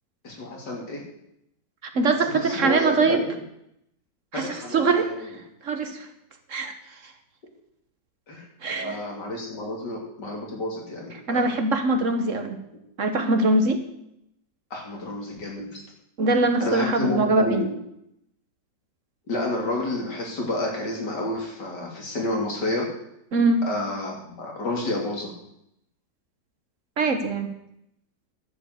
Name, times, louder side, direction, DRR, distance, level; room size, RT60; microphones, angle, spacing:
voice 1, 0.2-1.0 2.3-3.3 4.3-5.3 8.3-8.4 8.8-11.4 14.7-15.8 16.6-17.7 19.3-22.9 23.6-25.3, left 2 dB, 85° left, -1 dB, 3.8 m, -30 dB
voice 2, 1.9-3.2 4.3-5.3 5.6-6.1 6.5-6.7 8.6-9.0 11.3-12.6 13.0-13.8 16.2-17.6 23.3-23.6 27.0-27.5, right 3 dB, 50° right, 7 dB, 1.5 m, -22 dB
12.0 x 7.8 x 8.0 m, 0.78 s
omnidirectional pair, 1.8 m